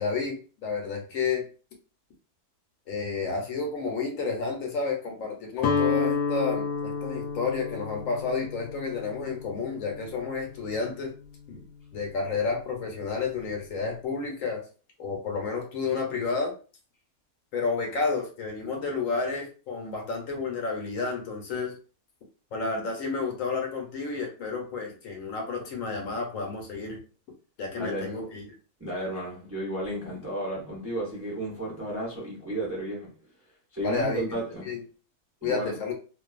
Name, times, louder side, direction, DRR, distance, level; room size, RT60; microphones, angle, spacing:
voice 1, 0.0-1.5 2.9-11.1 11.5-11.6 11.9-14.6 15.0-16.5 17.5-21.7 22.5-27.0 27.6-28.5 33.8-34.3 34.6-34.8 35.4-35.9, left 4 dB, 70° left, 1.1 m, -31 dB
Guitar, 5.6-11.6, left 5 dB, 90° left, 1.1 m, -31 dB
voice 2, 27.7-28.2 28.8-33.1 33.7-34.8 35.4-35.8, right 1 dB, 15° right, 0.5 m, -33 dB
2.5 x 2.2 x 2.3 m
omnidirectional pair, 1.5 m